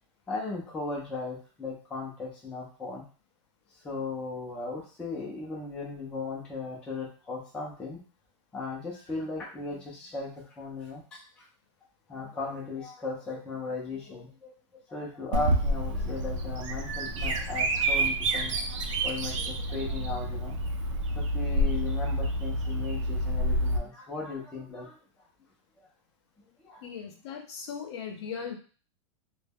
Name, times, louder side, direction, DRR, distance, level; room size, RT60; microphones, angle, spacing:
voice 1, 0.3-3.0 3.8-8.0 8.5-11.2 12.1-14.5 14.9-20.5 21.2-25.0 26.6-26.8, left 3 dB, 5° left, -4 dB, 0.4 m, -37 dB
Bird vocalization bird call bird song, 15.3-23.8, right 1 dB, 75° right, 0.5 m, -28 dB
voice 2, 26.8-28.6, left 7 dB, 55° left, 3 dB, 0.6 m, -38 dB
2.2 x 2.0 x 3.4 m, 0.38 s
supercardioid pair, 165°, 16 cm